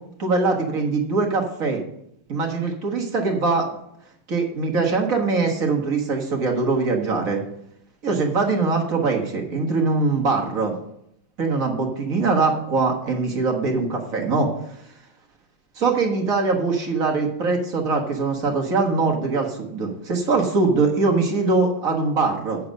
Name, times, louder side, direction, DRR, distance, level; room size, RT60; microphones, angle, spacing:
voice 1, 0.2-1.8 2.3-3.7 4.3-7.4 8.0-10.7 11.4-14.5 15.7-22.6, right 3 dB, 45° right, 1 dB, 1.7 m, -22 dB
8.0 x 6.7 x 6.4 m, 0.75 s
omnidirectional pair, 2.2 m